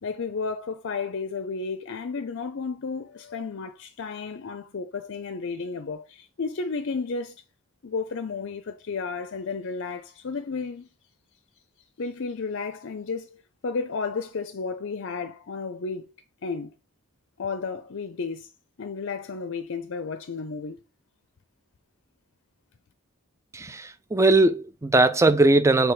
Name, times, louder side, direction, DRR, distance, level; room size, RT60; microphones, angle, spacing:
voice 1, 0.0-7.4 7.8-10.9 12.0-16.1 16.4-16.7 17.4-18.5 18.8-20.8, left 4 dB, 55° left, 0.5 m, -32 dB
voice 2, 23.5-25.9, right 2 dB, 15° right, 0.4 m, -20 dB
6.6 x 3.3 x 4.6 m
head